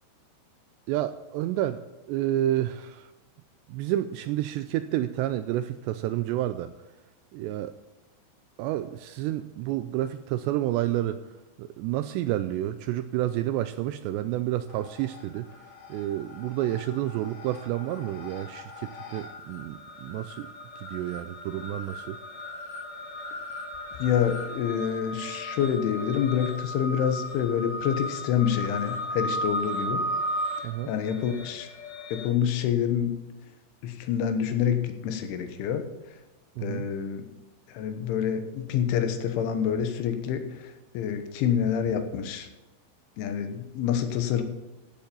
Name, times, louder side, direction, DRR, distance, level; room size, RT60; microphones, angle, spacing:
voice 1, 0.9-1.8 2.1-3.1 3.7-6.7 7.3-7.8 8.6-11.2 11.6-15.5 15.9-20.5 20.8-22.2 30.6-30.9 36.6-36.9, right 13 dB, 85° right, 11 dB, 2.5 m, -30 dB
sound 1, 14.7-15.4 15.7-32.3, equal, 55° left, 2.8 m, -36 dB
voice 2, 24.0-30.0 30.9-31.7 32.1-33.1 33.8-35.8 36.6-37.3 37.8-40.4 41.0-42.5 43.2-44.4, left 8 dB, 85° left, 7 dB, 3.6 m, -27 dB
15.0 x 7.4 x 5.5 m, 1.1 s
omnidirectional pair, 5.4 m